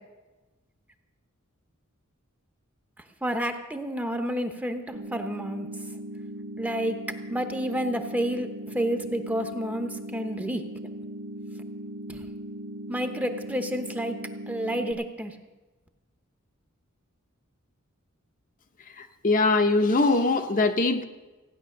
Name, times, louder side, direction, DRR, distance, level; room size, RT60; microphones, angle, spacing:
voice 1, 3.2-5.7 6.6-7.0 7.3-10.6 12.1-12.2 12.9-14.2 14.5-15.3, equal, 5° right, 6 dB, 0.9 m, -30 dB
sound 1, 4.9-14.9, right 1 dB, 75° right, 1.4 m, -38 dB
voice 2, 19.0-21.0, left 3 dB, 40° left, 6 dB, 0.9 m, -22 dB
16.0 x 9.8 x 6.5 m, 1.2 s
head